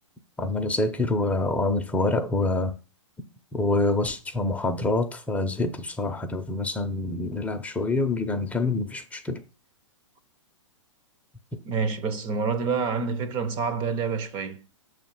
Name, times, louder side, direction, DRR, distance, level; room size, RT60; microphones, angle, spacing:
voice 1, 0.4-2.8 3.5-9.4, left 2 dB, 10° left, 0.7 m, -26 dB
voice 2, 11.6-14.6, right 5 dB, 30° right, 0.7 m, -27 dB
6.5 x 3.2 x 5.9 m
hypercardioid pair, 120°, 16 cm